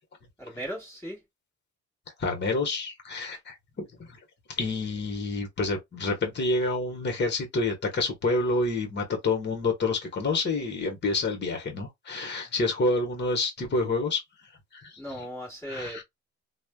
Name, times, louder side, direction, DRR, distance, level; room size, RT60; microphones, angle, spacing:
voice 1, 0.4-1.2 15.0-16.0, right 1 dB, 10° left, 1.4 m, -37 dB
voice 2, 2.2-3.6 4.0-4.2 4.5-14.2 14.7-15.0 15.7-16.0, left 3 dB, 35° left, 1.1 m, -28 dB
3.1 x 2.1 x 2.2 m
cardioid pair, 90°, 30 cm